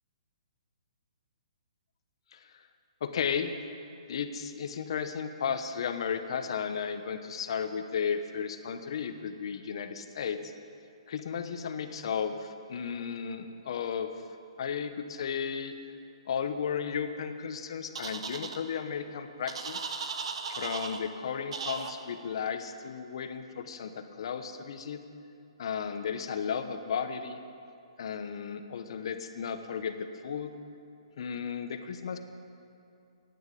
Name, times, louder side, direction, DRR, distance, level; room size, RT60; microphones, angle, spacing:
voice 1, 2.3-2.6 3.0-3.6 4.1-10.5 11.1-14.1 14.6-15.7 16.3-19.8 20.5-25.0 25.6-27.4 28.0-30.5 31.2-32.2, left 7 dB, 55° left, 9 dB, 0.9 m, -34 dB
sound 1, 18.0-18.6 19.5-21.0 21.5-21.9, right 5 dB, 65° right, 1.0 m, -36 dB
9.5 x 9.2 x 8.3 m, 2.6 s
hypercardioid pair, 155°, 3 cm